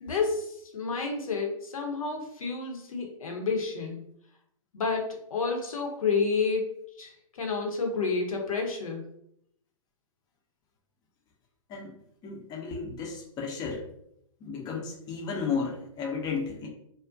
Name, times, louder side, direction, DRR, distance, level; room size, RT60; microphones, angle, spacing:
voice 1, 0.0-4.0 4.7-9.0, left 4 dB, 75° left, 1 dB, 0.7 m, -30 dB
voice 2, 12.2-13.8 14.4-16.7, left 5 dB, 20° left, -1 dB, 0.6 m, -33 dB
2.4 x 2.0 x 2.5 m, 0.73 s
hypercardioid pair, 125°, 18 cm